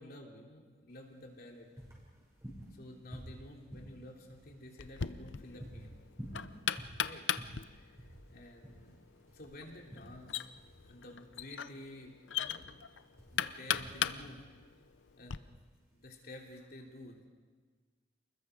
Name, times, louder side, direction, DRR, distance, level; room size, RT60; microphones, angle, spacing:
voice 1, 0.0-1.7 2.7-6.0 7.0-7.3 7.7-9.0 9.3-10.5 10.8-12.9 13.3-14.4 15.1-15.6 15.9-17.3, left 1 dB, 55° left, 0 dB, 3.1 m, -51 dB
sound 1, 0.9-16.6, equal, 15° right, 6.3 m, -51 dB
Knock, 4.8-15.4, left 8 dB, 90° left, 0.7 m, -39 dB
30.0 x 21.0 x 5.1 m, 1.5 s
head